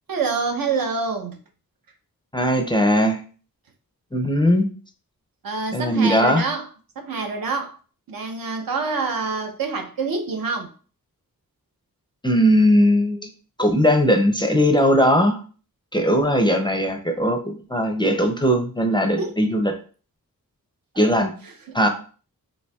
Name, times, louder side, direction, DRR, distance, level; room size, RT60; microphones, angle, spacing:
voice 1, 0.1-1.4 5.4-6.7 7.0-7.8 8.1-10.7 19.2-19.3 20.9-21.9, right 4 dB, 70° right, 0.7 m, -27 dB
voice 2, 2.3-3.2 4.1-4.7 5.7-6.4 12.2-13.2 13.6-15.4 15.9-19.7 21.0-21.3 21.7-21.9, equal, 15° left, 0.4 m, -19 dB
4.2 x 2.6 x 2.2 m
wide cardioid pair, 95°, 36 cm